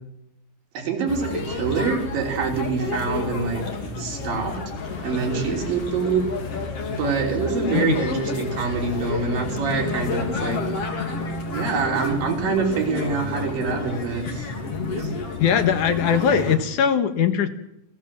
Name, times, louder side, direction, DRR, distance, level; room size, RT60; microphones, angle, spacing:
voice 1, 0.7-3.6 4.0-4.6 5.0-6.3 6.9-10.6 11.5-14.5 15.0-15.1, right 5 dB, 75° right, 1 dB, 5.2 m, -25 dB
sound 1, 1.1-16.6, left 4 dB, 45° left, 3.4 m, -30 dB
sound 2, 4.7-10.2, left 2 dB, 85° left, 5.2 m, -41 dB
voice 2, 7.7-8.0 15.4-17.5, left 7 dB, 65° left, 9 dB, 2.5 m, -20 dB
29.0 x 15.0 x 7.4 m, 0.83 s
omnidirectional pair, 4.1 m